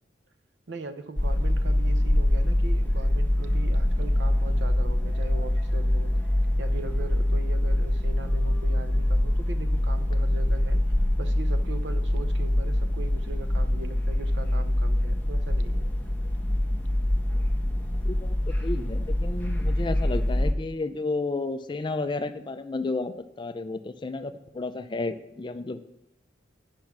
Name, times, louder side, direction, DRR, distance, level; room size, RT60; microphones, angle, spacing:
voice 1, 0.7-6.1 6.6-10.8 11.2-15.9, right 3 dB, 65° right, 10 dB, 0.7 m, -40 dB
sound 1, 1.2-20.5, left 1 dB, 10° left, 0.9 m, -24 dB
voice 2, 18.0-25.8, left 3 dB, 25° left, 10 dB, 0.4 m, -32 dB
10.5 x 5.2 x 5.9 m, 0.89 s
head